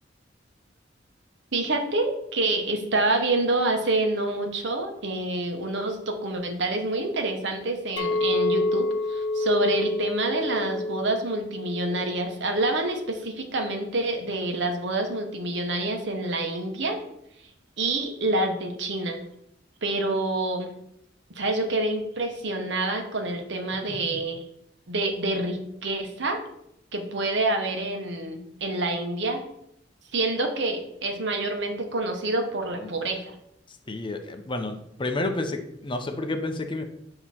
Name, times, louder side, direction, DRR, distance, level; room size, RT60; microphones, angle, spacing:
voice 1, 1.5-17.0 17.8-19.2 19.8-20.7 21.3-24.4 24.9-26.4 26.9-29.4 30.1-33.3, right 2 dB, 70° right, 4 dB, 0.9 m, -27 dB
Chink clink, 8.0-12.3 12.6-13.1, left 2 dB, 75° left, 0.6 m, -28 dB
voice 2, 33.7-36.8, left 2 dB, 25° left, 6 dB, 0.6 m, -30 dB
8.1 x 2.9 x 4.3 m, 0.78 s
head